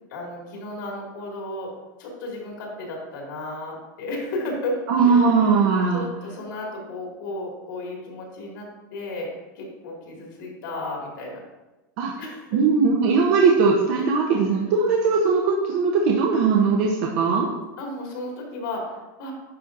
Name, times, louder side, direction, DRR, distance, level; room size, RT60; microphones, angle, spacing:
voice 1, 0.1-1.7 2.0-11.4 12.2-12.6 13.9-14.3 17.8-19.3, left 2 dB, 80° left, -1 dB, 2.1 m, -34 dB
voice 2, 4.9-6.0 12.0-12.1 12.5-17.5, right 5 dB, 55° right, -1 dB, 0.7 m, -19 dB
10.0 x 4.0 x 2.5 m, 1.1 s
supercardioid pair, 145°, 11 cm